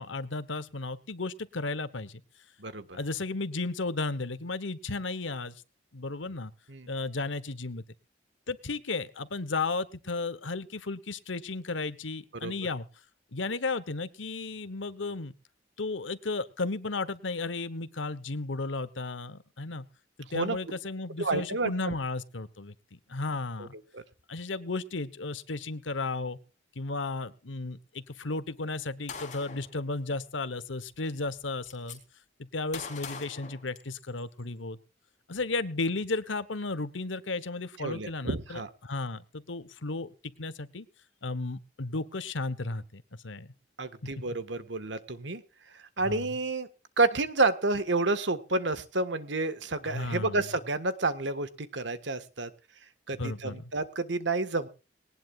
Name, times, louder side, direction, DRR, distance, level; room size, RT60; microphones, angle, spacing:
voice 1, 0.0-2.2 2.9-5.6 5.9-6.5 6.9-7.8 8.5-12.9 13.3-15.3 15.8-19.8 20.2-23.7 24.3-26.4 26.7-32.0 32.4-34.8 35.3-40.9 41.2-43.5 46.0-46.2 49.8-50.4 53.2-53.6, left 3 dB, 90° left, 15 dB, 1.2 m, -34 dB
voice 2, 2.6-3.0 6.7-6.9 12.4-12.5 20.3-20.6 21.2-22.0 23.9-24.0 37.8-38.7 43.8-45.4 45.7-46.7 47.0-52.5 53.1-54.7, right 3 dB, 70° right, 11 dB, 1.6 m, -30 dB
Gunshot gunfire, 29.1-29.7 30.9-31.0 31.3-32.0 32.7-34.2, left 5 dB, 40° left, 4.0 m, -42 dB
19.5 x 19.0 x 2.5 m, 0.33 s
head